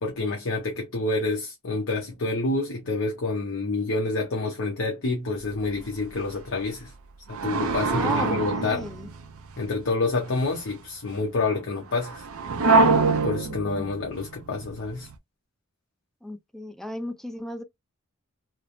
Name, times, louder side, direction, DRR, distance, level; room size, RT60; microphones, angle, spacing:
voice 1, 0.0-6.9 7.3-8.9 9.6-12.2 13.2-15.1, left 3 dB, 65° left, 0.8 m, -28 dB
sound 1, 5.4-5.8 6.1-6.3 7.3-9.6 10.2-10.5 11.9-15.1, right 3 dB, 75° right, 0.5 m, -25 dB
voice 2, 7.8-9.1 13.4-13.9 16.2-17.6, left 1 dB, ahead, 0.3 m, -35 dB
3.3 x 2.0 x 2.4 m
head